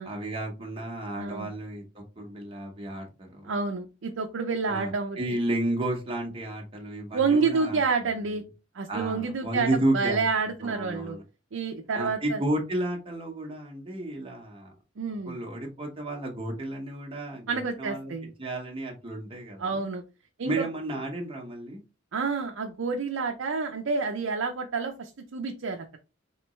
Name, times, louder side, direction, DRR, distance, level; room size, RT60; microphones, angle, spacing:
voice 1, 0.0-3.5 4.7-7.8 8.9-10.2 10.6-11.2 11.9-14.7 15.3-18.1 18.4-19.8 20.4-21.8, right 1 dB, 25° right, 0 dB, 0.9 m, -32 dB
voice 2, 1.2-1.5 3.4-5.2 7.1-8.4 8.7-11.2 11.5-12.4 15.0-15.4 17.5-18.3 19.6-20.0 20.4-20.7 22.1-26.0, right 4 dB, 75° right, 3 dB, 0.5 m, -29 dB
3.8 x 3.3 x 3.0 m, 0.30 s
head